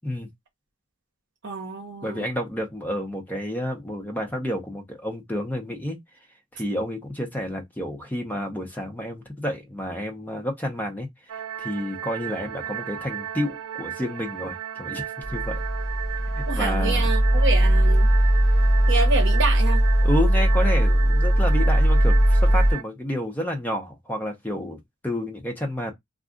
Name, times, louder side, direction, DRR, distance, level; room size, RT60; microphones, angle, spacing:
voice 1, 1.4-2.2 16.5-18.1 18.9-19.8, right 4 dB, 55° right, 0.9 m, -28 dB
voice 2, 2.0-6.0 6.5-11.1 11.6-15.6 16.3-17.1 20.0-25.9, equal, 10° left, 0.7 m, -30 dB
sound 1, 11.3-22.8, right 10 dB, 70° right, 0.4 m, -35 dB
sound 2, 15.2-22.7, equal, 65° left, 1.1 m, -19 dB
2.5 x 2.3 x 3.7 m
head